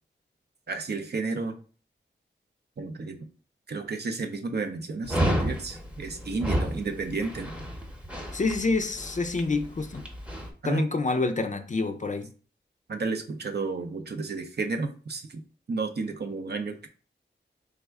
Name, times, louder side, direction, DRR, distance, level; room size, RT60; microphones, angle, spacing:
voice 1, 0.7-1.6 2.8-3.3 3.7-7.5 10.6-10.9 12.9-15.4 15.7-16.9, right 3 dB, 60° right, 0.5 m, -32 dB
Dog, 5.1-10.5, equal, 5° right, 0.8 m, -31 dB
voice 2, 8.3-10.0 10.6-12.3, left 3 dB, 40° left, 0.4 m, -27 dB
3.4 x 2.1 x 3.4 m
cardioid pair, 50°, 20 cm